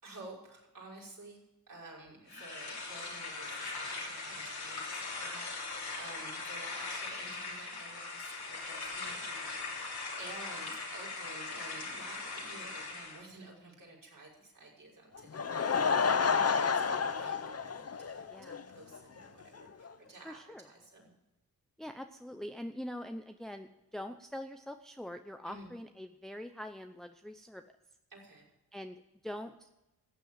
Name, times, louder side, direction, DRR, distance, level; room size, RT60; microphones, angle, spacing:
voice 1, 0.0-1.4 1.7-9.9 10.2-21.1 25.4-25.7 28.1-28.5, right 2 dB, 60° right, -3 dB, 5.8 m, -52 dB
sound 1, 2.3-13.2, left 3 dB, 80° left, 3.3 m, -40 dB
Laughter / Crowd, 15.1-18.6 18.9-19.0 19.6-19.7 19.8-19.9, left 6 dB, 40° left, 0.8 m, -30 dB
voice 2, 16.3-17.0 18.3-18.6 20.2-20.7 21.8-27.6 28.7-29.7, left 1 dB, ahead, 7 dB, 0.7 m, -44 dB
14.5 x 8.0 x 7.5 m, 0.95 s
cardioid pair, 60°, 37 cm